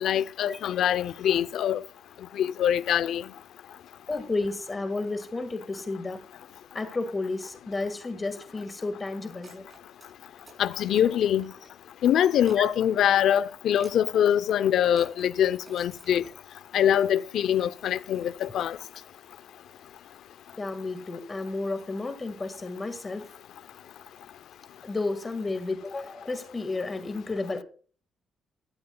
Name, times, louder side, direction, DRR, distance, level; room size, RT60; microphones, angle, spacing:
voice 1, 0.0-1.8 2.4-3.2 10.6-11.5 12.0-16.2 16.7-18.8, left 10 dB, 75° left, 0.5 m, -24 dB
voice 2, 4.1-6.2 6.7-9.7 12.6-12.7 20.6-23.3 24.8-27.6, left 3 dB, 25° left, 1.8 m, -32 dB
sound 1, 9.3-10.1 10.4-11.7 12.1-12.6 13.8-14.0 14.4-16.3, right 2 dB, 30° right, 7.8 m, -52 dB
15.5 x 13.5 x 2.3 m
cardioid pair, 90°, 0 cm